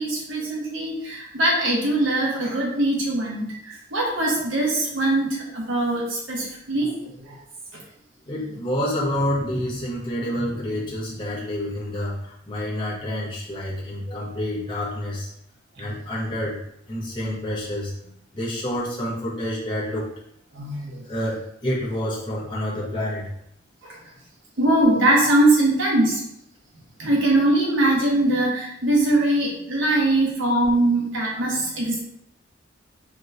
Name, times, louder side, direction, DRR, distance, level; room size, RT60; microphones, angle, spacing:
voice 1, 0.0-6.9 7.3-7.4 20.5-21.0 24.6-26.2 27.0-32.0, right 1 dB, 70° right, -3 dB, 1.1 m, -21 dB
voice 2, 8.3-15.3 15.8-16.6 16.9-20.1 21.1-23.3, left 1 dB, 25° left, -6 dB, 1.1 m, -28 dB
4.6 x 3.0 x 2.6 m, 0.76 s
head